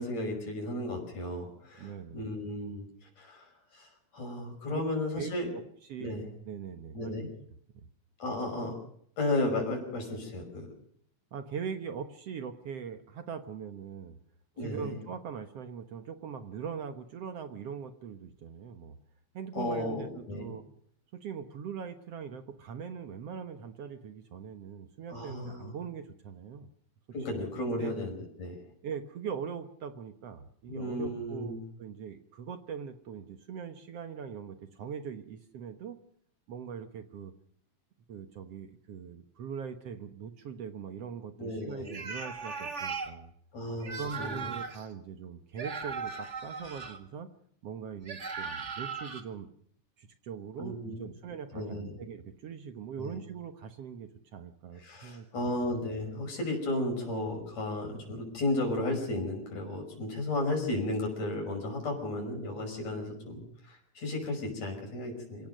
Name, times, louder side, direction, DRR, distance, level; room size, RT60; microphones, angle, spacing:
voice 1, 0.0-2.8 3.2-5.5 6.0-6.3 6.9-7.3 8.2-8.7 9.2-10.7 14.6-15.0 19.6-20.5 25.1-25.7 27.1-28.6 30.7-31.6 41.4-42.0 43.5-44.5 50.6-51.0 51.5-52.0 53.0-53.2 54.8-65.5, left 1 dB, 60° left, 1 dB, 6.9 m, -34 dB
voice 2, 1.8-2.3 4.7-4.8 5.2-5.6 5.9-7.3 7.8-7.9 11.3-14.2 14.6-19.0 19.3-20.6 21.1-26.7 27.8-27.9 28.8-36.0 36.5-37.3 38.1-43.3 44.0-47.3 47.6-49.5 50.0-55.3, right 7 dB, 60° right, 8 dB, 2.0 m, -41 dB
sound 1, 41.8-43.1 43.8-44.8 45.6-47.0 48.1-49.2, right 5 dB, 30° right, 1.6 m, -38 dB
26.0 x 16.5 x 6.6 m, 0.66 s
omnidirectional pair, 3.4 m